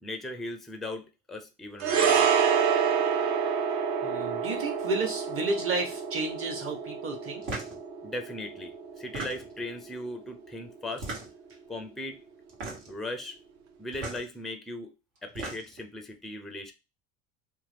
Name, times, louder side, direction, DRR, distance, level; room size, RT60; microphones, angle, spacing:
voice 1, 0.0-2.3 8.0-11.1 11.7-12.2 12.9-13.4 13.8-14.9 15.2-16.7, left 1 dB, ahead, 0.4 m, -38 dB
sound 1, 1.8-10.3 10.5-10.7, right 7 dB, 55° right, 0.6 m, -28 dB
voice 2, 4.0-7.4, right 3 dB, 40° right, 1.2 m, -31 dB
sound 2, 7.4-7.8 9.0-9.7 10.9-11.5 12.5-13.0 13.9-14.2 15.2-15.8, right 2 dB, 75° right, 1.4 m, -37 dB
2.8 x 2.2 x 3.3 m
supercardioid pair, 100°, 34 cm